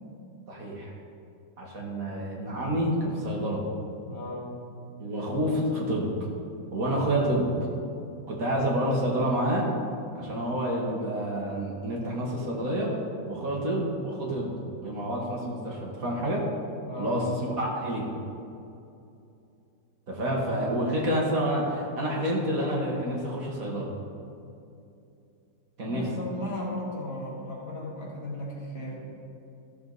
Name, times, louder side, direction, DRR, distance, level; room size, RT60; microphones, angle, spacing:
voice 1, 0.5-0.9 1.6-3.7 5.0-6.1 6.7-7.5 8.3-9.7 10.2-12.9 13.2-14.5 14.8-16.5 17.0-18.1 20.1-23.9 25.8-26.1, right 1 dB, 50° right, -2 dB, 1.7 m, -28 dB
voice 2, 4.0-4.6 13.5-13.8 16.8-17.3 25.8-29.0, left 1 dB, 55° left, -4 dB, 2.5 m, -36 dB
14.0 x 6.9 x 4.0 m, 2.6 s
omnidirectional pair, 2.1 m